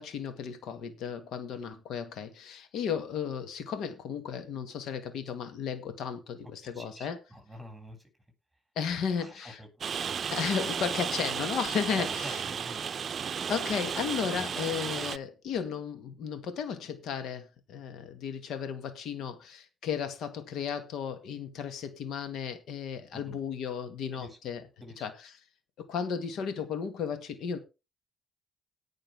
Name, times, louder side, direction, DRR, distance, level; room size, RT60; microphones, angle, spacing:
voice 1, 0.0-7.2 8.8-9.6 10.3-12.4 13.5-24.6 25.0-25.4 25.8-27.6, left 7 dB, 80° left, 1.8 m, -34 dB
voice 2, 6.6-8.0 9.2-9.7 12.0-12.9 23.1-23.4 24.1-24.4 24.8-25.0, equal, 5° right, 7.0 m, -46 dB
Rain, 9.8-15.2, right 7 dB, 50° right, 0.6 m, -33 dB
18.0 x 6.5 x 3.6 m
cardioid pair, 90°, 0 cm